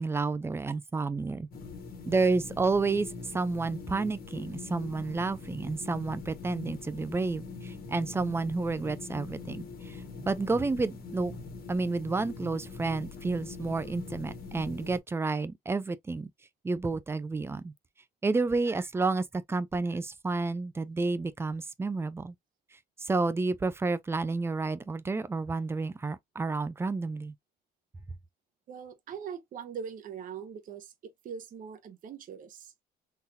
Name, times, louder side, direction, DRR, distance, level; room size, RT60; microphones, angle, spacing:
voice 1, 0.0-1.5 2.1-11.3 11.7-16.3 16.6-17.7 18.2-22.3 23.0-27.3, right 3 dB, 15° right, 0.5 m, -30 dB
sound 1, 1.5-15.0, left 4 dB, 60° left, 1.4 m, -43 dB
voice 2, 28.7-30.9 31.2-32.7, right 7 dB, 55° right, 0.9 m, -41 dB
3.9 x 2.5 x 2.7 m
cardioid pair, 110°, 17 cm